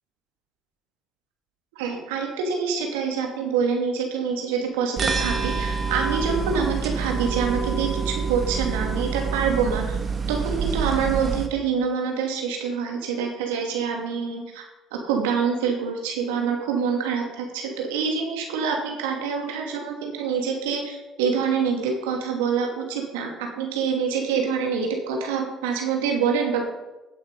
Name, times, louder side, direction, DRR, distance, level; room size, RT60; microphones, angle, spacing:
voice 1, 1.8-10.0 10.3-14.6 14.9-26.7, right 6 dB, 75° right, 2 dB, 2.7 m, -26 dB
sound 1, 5.0-11.5, right 5 dB, 40° right, 1.9 m, -27 dB
15.5 x 8.8 x 5.5 m, 1.1 s
hypercardioid pair, 55°, 0 cm